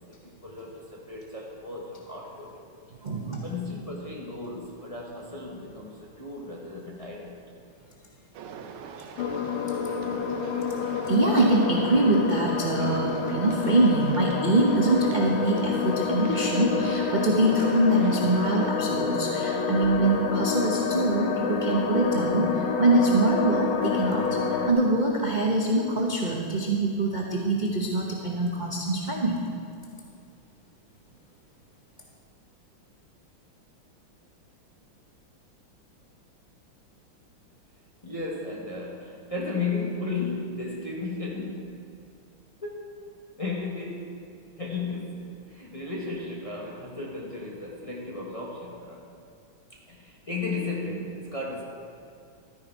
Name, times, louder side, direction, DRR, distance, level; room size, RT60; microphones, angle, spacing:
voice 1, 0.1-2.5 3.4-7.4 38.0-41.9 42.6-43.1 43.4-44.2 44.6-49.1 49.7-51.6, left 3 dB, 20° left, -3 dB, 1.0 m, -35 dB
voice 2, 3.0-3.5 11.0-29.4, right 2 dB, 40° right, -2 dB, 0.6 m, -24 dB
sound 1, 8.3-18.7, right 6 dB, 85° right, 1.6 m, -42 dB
sound 2, 9.2-24.7, left 6 dB, 75° left, 1.6 m, -28 dB
13.0 x 9.6 x 4.6 m, 2.3 s
omnidirectional pair, 2.3 m